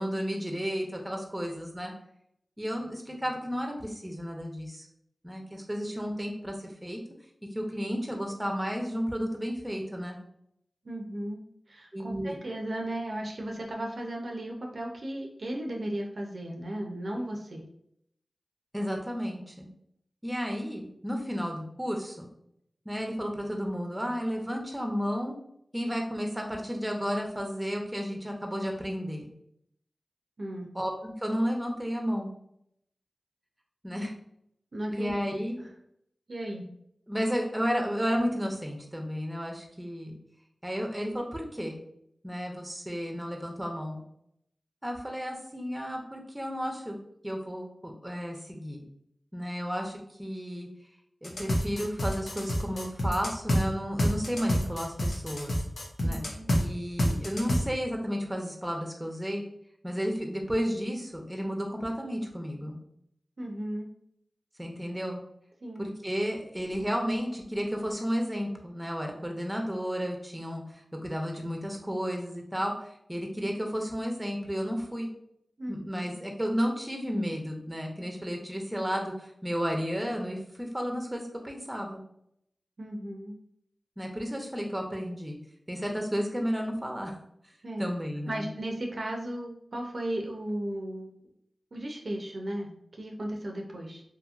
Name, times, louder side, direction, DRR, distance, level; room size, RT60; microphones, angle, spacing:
voice 1, 0.0-1.9 2.6-4.9 5.2-7.0 7.5-10.2 11.9-12.4 18.7-19.7 20.2-22.3 22.9-25.4 25.7-29.3 30.7-32.3 33.8-34.1 34.9-35.6 37.1-40.2 40.6-41.8 42.2-44.0 44.8-47.0 47.2-48.8 49.3-50.7 51.2-55.6 56.0-56.2 56.6-59.4 59.8-62.8 64.6-65.2 65.8-75.1 75.7-82.0 84.0-85.4 85.7-87.1 87.8-88.5, equal, 10° right, 1 dB, 0.6 m, -32 dB
voice 2, 10.8-17.6 30.4-30.7 34.7-35.7 36.3-36.7 56.0-56.5 63.4-63.9 65.6-65.9 75.6-76.2 82.8-83.4 87.6-87.9 88.3-91.1 91.7-94.0, right 1 dB, 70° right, 1 dB, 0.5 m, -36 dB
sound 1, 51.2-53.6 54.0-56.6 57.0-57.6, equal, 80° left, 0.5 m, -27 dB
2.8 x 2.7 x 2.4 m, 0.73 s
cardioid pair, 40°, 0 cm